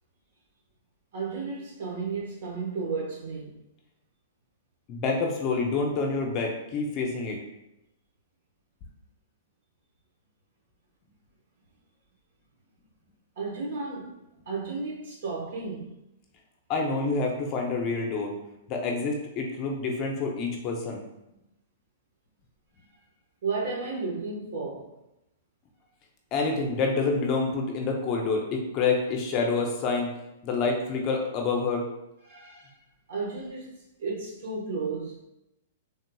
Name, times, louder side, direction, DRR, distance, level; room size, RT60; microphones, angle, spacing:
voice 1, 1.1-3.6 13.4-14.1 14.5-15.9 23.4-24.9 32.3-32.7 33.1-33.7 34.0-35.1, right 4 dB, 65° right, 1.0 m, -33 dB
voice 2, 4.9-7.4 16.7-18.3 18.7-21.0 26.3-30.1 30.4-31.8, left 4 dB, 30° left, 0.6 m, -27 dB
3.4 x 2.8 x 2.2 m
hypercardioid pair, 150°, 0 cm